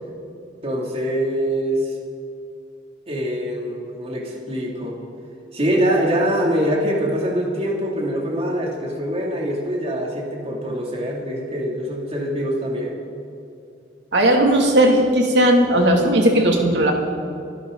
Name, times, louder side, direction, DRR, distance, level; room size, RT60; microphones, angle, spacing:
voice 1, 0.6-2.0 3.1-5.0 5.5-13.0, equal, 35° right, -2 dB, 2.9 m, -24 dB
voice 2, 14.1-16.9, right 1 dB, 70° right, 0 dB, 2.7 m, -16 dB
28.0 x 12.0 x 4.0 m, 2.6 s
head